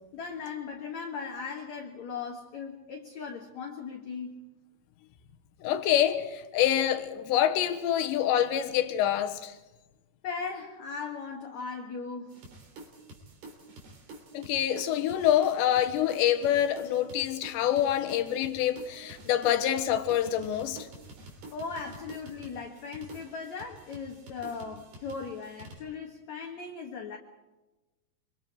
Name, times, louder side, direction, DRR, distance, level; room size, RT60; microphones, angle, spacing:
voice 1, 0.1-4.3 10.2-12.4 21.5-27.2, left 5 dB, 55° left, 2.3 m, -38 dB
voice 2, 5.6-9.5 14.3-20.9, left 11 dB, 85° left, 3.5 m, -26 dB
sound 1, 12.3-25.8, right 2 dB, 65° right, 5.5 m, -49 dB
26.0 x 24.5 x 4.8 m
omnidirectional pair, 5.0 m